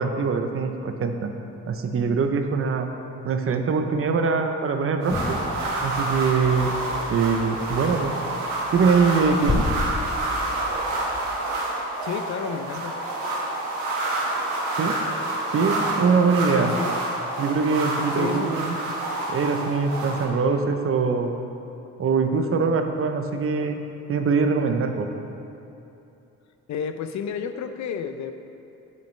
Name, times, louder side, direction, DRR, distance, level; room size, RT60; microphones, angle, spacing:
voice 1, 0.0-1.3 1.7-2.9 3.2-5.4 5.8-6.7 7.1-8.1 8.7-9.7 14.8-15.0 15.5-16.7 17.4-18.8 19.3-21.3 22.0-23.8 24.1-25.1, right 5 dB, 45° right, 6 dB, 0.7 m, -23 dB
sound 1, 5.0-20.3, right 2 dB, 90° right, 1.2 m, -28 dB
sound 2, 5.1-11.5, left 3 dB, 15° left, 0.4 m, -33 dB
voice 2, 12.0-12.9 16.5-16.9 18.2-18.5 18.9-19.0 26.7-28.3, left 7 dB, 65° left, 8 dB, 0.5 m, -31 dB
8.5 x 6.5 x 3.3 m, 2.9 s
cardioid pair, 90°, 30 cm